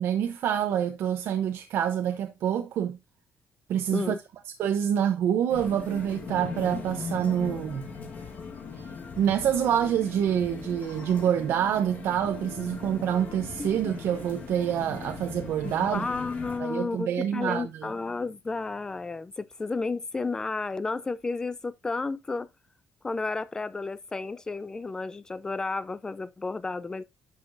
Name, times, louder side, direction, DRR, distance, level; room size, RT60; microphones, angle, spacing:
voice 1, 0.0-3.0 3.7-4.1 4.6-7.9 8.8-8.9 9.2-16.1 16.6-17.9, right 9 dB, 70° right, 0.7 m, -27 dB
sound 1, 5.5-16.6, left 5 dB, 40° left, 1.5 m, -39 dB
voice 2, 13.6-13.9 15.6-22.5 23.0-27.0, left 3 dB, 15° left, 0.4 m, -32 dB
10.5 x 5.8 x 2.6 m
cardioid pair, 170°, 4 cm